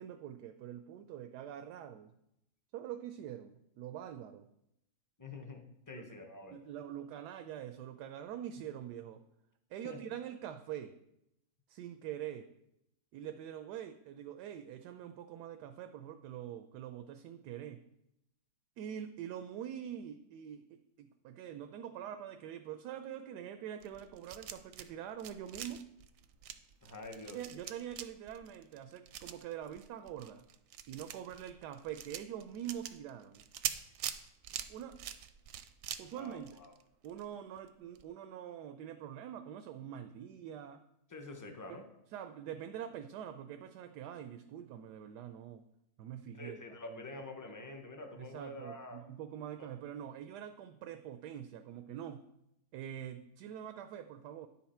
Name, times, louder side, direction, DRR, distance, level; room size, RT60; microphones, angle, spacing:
voice 1, 0.0-2.1 2.7-4.5 5.9-6.0 6.5-9.2 9.7-10.9 11.7-12.5 13.1-17.8 18.8-25.8 27.3-30.4 30.9-33.4 34.7-35.0 36.0-36.6 37.0-40.8 42.1-45.6 46.0-46.6 46.9-47.0 48.2-52.3 52.7-54.5, right 10 dB, 85° right, 7 dB, 1.2 m, -44 dB
voice 2, 5.2-6.6 9.8-10.0 26.8-27.4 36.1-36.7 41.1-41.9 46.4-49.0 49.6-49.7, left 2 dB, 20° left, 4 dB, 0.5 m, -47 dB
sound 1, 23.8-24.9 25.1-37.2 37.6-37.7 38.0-38.1, right 10 dB, 70° right, 0.8 m, -44 dB
9.9 x 5.7 x 4.3 m, 0.82 s
omnidirectional pair, 1.7 m